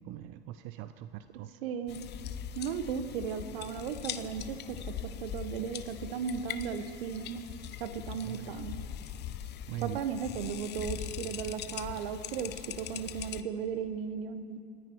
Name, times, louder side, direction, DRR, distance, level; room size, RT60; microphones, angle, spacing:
voice 1, 0.0-1.5 8.2-8.6 9.7-10.0, right 13 dB, 45° right, 10 dB, 0.6 m, -41 dB
voice 2, 1.6-2.1 2.5-4.8 5.2-7.4 7.8-8.9 9.8-14.6, right 7 dB, 65° right, 11 dB, 1.2 m, -36 dB
sound 1, 1.9-13.4, left 10 dB, 35° left, 0.8 m, -41 dB
28.0 x 9.5 x 4.6 m, 2.9 s
hypercardioid pair, 90°, 31 cm